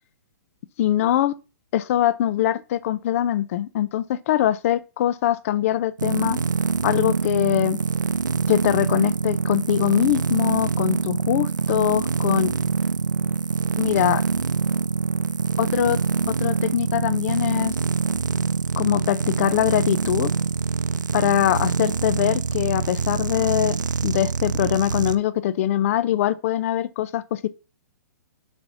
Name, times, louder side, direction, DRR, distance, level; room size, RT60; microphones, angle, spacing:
voice 1, 0.8-1.3 1.7-6.4 6.8-7.8 8.5-12.5 13.8-14.2 15.6-16.0 16.3-17.7 18.8-20.3 21.1-23.8 24.0-27.5, left 12 dB, 50° left, 0.5 m, -22 dB
sound 1, 6.0-25.1, right 5 dB, 90° right, 0.5 m, -25 dB
5.2 x 4.8 x 5.8 m
hypercardioid pair, 125°, 10 cm